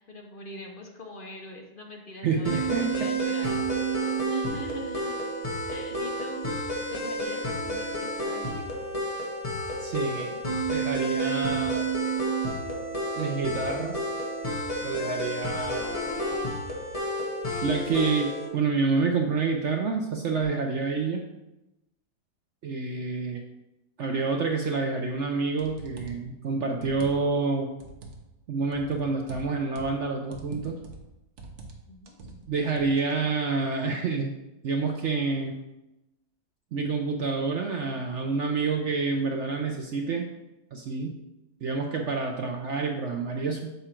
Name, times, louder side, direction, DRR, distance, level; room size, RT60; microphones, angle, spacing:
voice 1, 0.0-3.7 3.9-5.2 5.7-6.4 6.9-8.6 31.9-32.6, left 1 dB, 50° left, 1 dB, 0.6 m, -42 dB
voice 2, 2.2-3.1 9.8-10.3 10.7-11.9 13.1-14.1 14.8-15.9 17.6-21.2 22.6-23.4 24.0-27.7 28.5-30.8 32.5-34.3 34.6-35.6 36.7-40.3 40.7-41.2 41.6-43.7, right 4 dB, 75° right, 2 dB, 0.6 m, -28 dB
sound 1, 2.4-18.5, right 2 dB, 20° left, 1.2 m, -30 dB
sound 2, 25.1-25.2 25.6-26.3 26.7-27.4 27.8-28.2 28.7-30.0 30.3-31.1 31.4-31.8 32.1-32.9, right 3 dB, 50° right, 1.0 m, -43 dB
6.9 x 5.0 x 4.4 m, 0.96 s
omnidirectional pair, 2.0 m